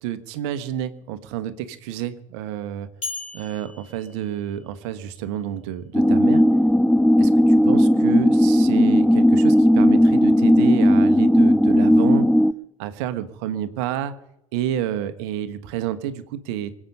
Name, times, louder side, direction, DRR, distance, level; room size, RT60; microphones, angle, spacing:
voice 1, 0.0-2.9 3.3-6.4 7.2-12.2 12.8-14.1 14.5-16.8, right 11 dB, 55° right, 12 dB, 1.4 m, -29 dB
sound 1, 3.0-5.1, left 3 dB, 80° left, 5.0 m, -37 dB
sound 2, 5.9-12.5, equal, ahead, 0.5 m, -16 dB
26.0 x 8.7 x 5.5 m, 0.82 s
figure-of-eight pair, 70°, 17 cm